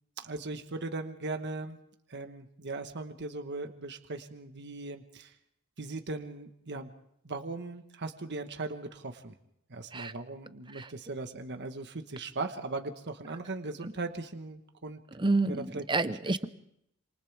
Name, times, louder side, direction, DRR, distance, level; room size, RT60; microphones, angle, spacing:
voice 1, 0.2-1.8 2.1-5.4 5.8-6.9 7.2-9.3 9.7-15.0 15.5-15.8, right 3 dB, 55° right, 6 dB, 1.3 m, -38 dB
voice 2, 15.2-16.5, right 3 dB, 20° right, 12 dB, 0.9 m, -29 dB
28.0 x 27.0 x 3.5 m, 0.76 s
head